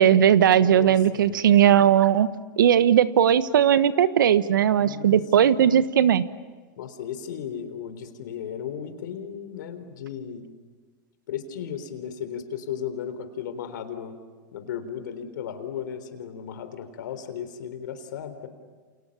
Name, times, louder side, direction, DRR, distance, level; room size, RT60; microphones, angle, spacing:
voice 1, 0.0-2.3 2.6-6.2, right 9 dB, 85° right, 14 dB, 1.2 m, -18 dB
voice 2, 0.5-1.4 4.8-5.2 6.8-10.5 11.3-14.2 14.5-18.5, left 8 dB, 75° left, 10 dB, 3.8 m, -35 dB
29.0 x 28.5 x 7.1 m, 1.4 s
hypercardioid pair, 110°, 10 cm